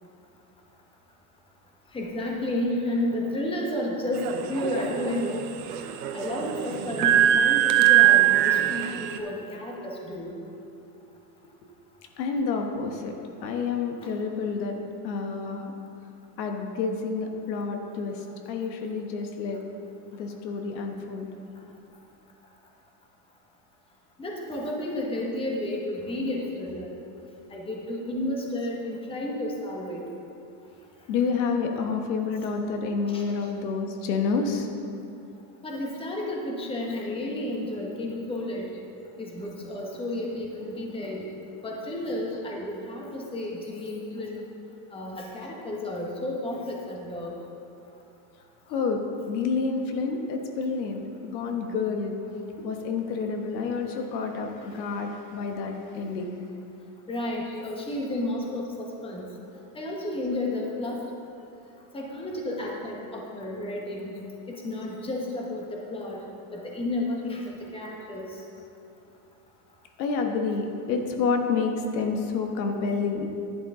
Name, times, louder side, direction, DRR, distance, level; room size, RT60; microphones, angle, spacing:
voice 1, 1.9-5.4 6.1-10.4 14.0-14.1 24.2-26.9 27.5-30.0 33.1-33.3 35.6-38.7 39.2-41.3 41.6-44.4 44.9-47.3 57.1-59.3 59.7-61.1 61.9-66.2 66.5-68.4, left 1 dB, 10° left, -1 dB, 1.2 m, -32 dB
sound 1, 4.1-9.2, right 12 dB, 60° right, 0.9 m, -22 dB
voice 2, 12.2-13.1 13.4-14.8 15.0-15.7 16.4-19.6 20.1-21.3 31.1-34.7 48.7-52.2 52.6-56.4 70.0-73.3, left 4 dB, 85° left, 3 dB, 1.4 m, -29 dB
11.0 x 10.5 x 3.7 m, 2.7 s
supercardioid pair, 140°, 50 cm